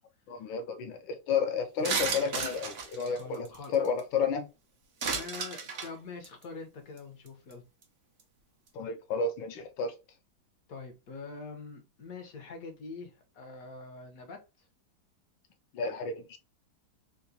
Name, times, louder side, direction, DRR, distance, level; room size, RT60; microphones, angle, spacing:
voice 1, 0.3-3.5 3.7-4.5 8.7-9.9 15.7-16.4, left 5 dB, 80° left, 1.4 m, -31 dB
sound 1, 1.8-4.0 5.0-5.9 6.2-6.4 7.0-7.1 7.3-7.5 7.8-7.9, right 5 dB, 70° right, 0.6 m, -33 dB
voice 2, 3.1-3.7 5.1-7.6 10.7-14.4, left 4 dB, 60° left, 1.0 m, -44 dB
3.8 x 2.5 x 2.6 m
omnidirectional pair, 2.1 m